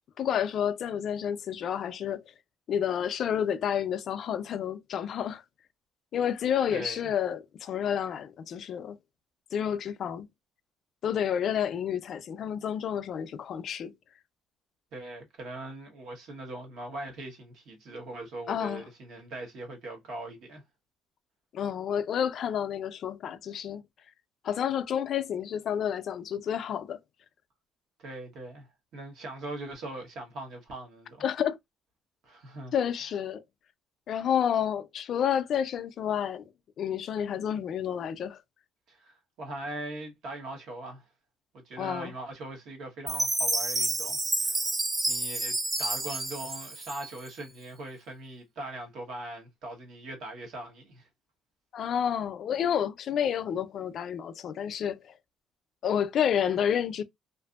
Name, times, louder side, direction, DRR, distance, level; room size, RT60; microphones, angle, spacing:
voice 1, 0.2-2.2 2.7-5.4 6.1-9.0 9.5-10.3 11.0-13.9 18.5-18.8 21.5-23.8 24.4-27.0 31.2-31.6 32.7-33.4 34.1-36.4 36.8-38.4 41.8-42.1 51.7-55.1 55.8-57.0, left 8 dB, 50° left, 0.3 m, -30 dB
voice 2, 14.9-20.6 28.0-28.7 28.9-31.2 32.2-32.7 38.9-41.0 41.6-44.6 45.1-51.1, right 2 dB, 65° right, 1.1 m, -41 dB
Chime, 43.1-47.4, right 2 dB, 20° right, 0.5 m, -29 dB
2.6 x 2.5 x 2.3 m
cardioid pair, 140°, 0 cm